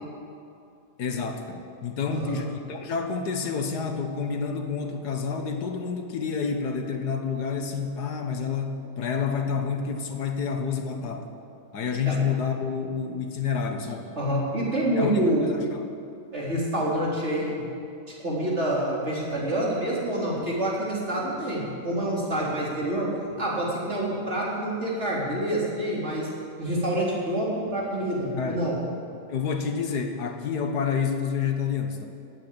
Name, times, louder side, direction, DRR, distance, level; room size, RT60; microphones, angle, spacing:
voice 1, 1.0-11.3 11.7-14.1 15.0-15.9 28.4-28.6 29.3-32.1, left 6 dB, 80° left, 5 dB, 1.8 m, -29 dB
voice 2, 14.2-15.5 16.3-17.6 18.1-23.1 23.4-26.3 26.6-28.8, right 1 dB, 40° right, -5 dB, 3.8 m, -27 dB
17.5 x 9.0 x 8.5 m, 2.5 s
omnidirectional pair, 1.7 m